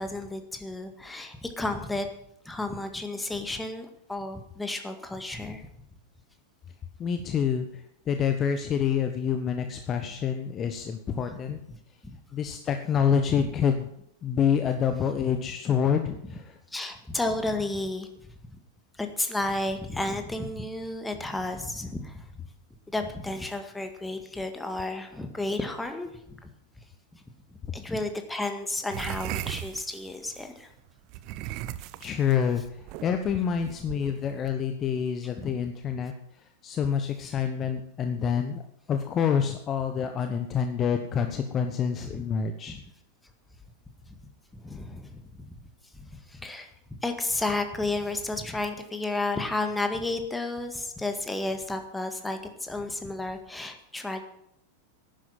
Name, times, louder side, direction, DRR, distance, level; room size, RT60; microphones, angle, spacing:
voice 1, 0.0-2.1 2.5-5.7 11.1-11.3 13.4-13.5 16.7-18.1 19.0-22.3 22.9-26.5 27.1-27.2 27.7-30.7 35.4-35.6 37.3-37.4 42.0-42.2 42.7-42.8 44.5-45.5 45.9-54.2, left 2 dB, 5° left, 6 dB, 1.9 m, -32 dB
voice 2, 7.0-11.6 12.3-13.9 14.2-16.6 32.0-36.1 36.6-38.6 38.9-42.8, left 7 dB, 25° left, 7 dB, 1.1 m, -27 dB
sound 1, 28.9-30.4 31.1-34.5, right 13 dB, 40° right, 0.7 m, -37 dB
11.5 x 10.5 x 7.7 m, 0.75 s
figure-of-eight pair, 90°, 0 cm